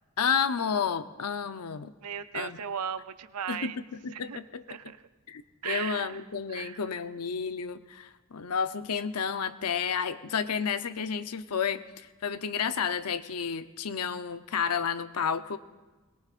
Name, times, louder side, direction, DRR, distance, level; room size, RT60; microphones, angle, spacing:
voice 1, 0.2-1.9 2.3-2.6 3.5-4.9 5.3-15.6, left 6 dB, 90° left, 10 dB, 0.7 m, -31 dB
voice 2, 2.0-3.8 4.1-4.4 4.7-5.0 5.6-6.2 6.5-6.8, right 8 dB, 85° right, 11 dB, 0.6 m, -36 dB
21.5 x 21.0 x 2.5 m, 1.2 s
head